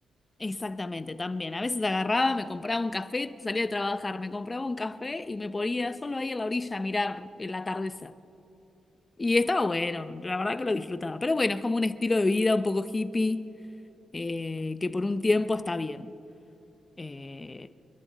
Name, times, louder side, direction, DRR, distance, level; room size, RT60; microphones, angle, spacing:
voice 1, 0.4-8.1 9.2-13.5 14.1-16.1 17.0-17.7, left 2 dB, 25° left, 0.6 m, -29 dB
29.0 x 11.0 x 4.0 m
cardioid pair, 95°, 0 cm